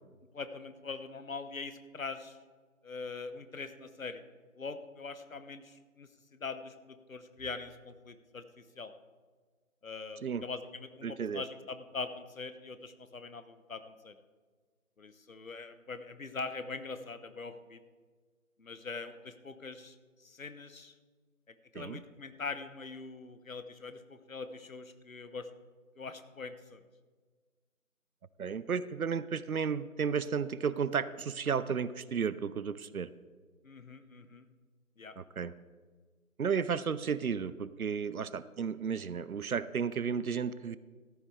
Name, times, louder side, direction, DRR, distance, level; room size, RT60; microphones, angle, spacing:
voice 1, 0.3-2.4 2.8-4.2 4.6-8.9 9.8-14.1 15.0-17.8 18.6-19.9 20.2-20.9 21.5-25.5 26.0-26.8 33.6-34.5 35.0-35.1, left 4 dB, 70° left, 11 dB, 1.1 m, -43 dB
voice 2, 11.0-11.4 21.7-22.0 28.4-33.1 35.2-35.5 36.4-40.8, right 6 dB, 90° right, 16 dB, 0.6 m, -33 dB
14.0 x 11.0 x 3.3 m, 1.5 s
figure-of-eight pair, 170°, 42 cm